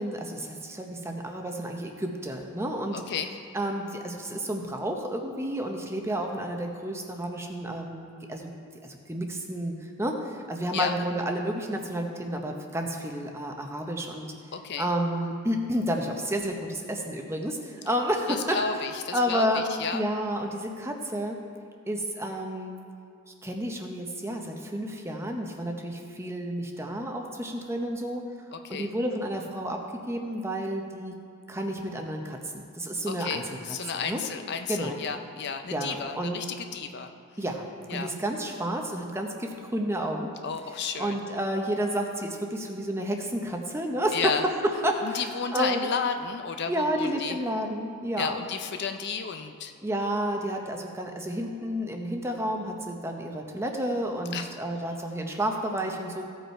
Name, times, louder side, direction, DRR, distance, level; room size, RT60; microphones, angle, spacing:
voice 1, 0.0-3.0 3.5-8.5 8.8-14.3 14.8-18.6 19.1-19.6 19.9-21.4 21.9-22.8 23.4-28.2 28.7-29.8 30.1-31.1 31.5-33.4 33.9-34.2 34.7-35.0 35.7-36.5 37.4-40.3 41.0-44.3 44.6-45.2 45.5-45.9 46.6-48.4 49.8-56.2, right 1 dB, 10° right, 2 dB, 0.7 m, -30 dB
voice 2, 14.5-14.9 18.3-20.0 28.5-28.9 33.1-37.1 37.9-38.1 40.4-41.2 44.1-44.4 45.0-47.4 48.2-49.7 54.3-54.5, left 6 dB, 50° left, 7 dB, 0.5 m, -32 dB
16.0 x 5.5 x 4.4 m, 2.3 s
head